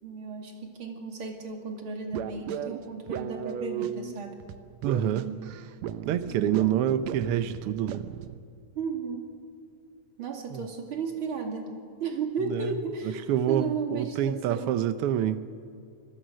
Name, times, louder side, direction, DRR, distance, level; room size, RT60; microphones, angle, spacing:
voice 1, 0.0-4.4 6.3-6.8 8.7-9.2 10.2-11.7 12.0-14.7, right 4 dB, 45° right, 3 dB, 3.0 m, -34 dB
sound 1, 2.1-8.4, right 10 dB, 70° right, 1.9 m, -36 dB
voice 2, 4.8-5.3 6.1-8.0 10.5-10.6 12.5-12.7 13.3-15.4, right 10 dB, 85° right, 12 dB, 1.2 m, -27 dB
27.0 x 21.0 x 6.4 m, 2.4 s
omnidirectional pair, 3.5 m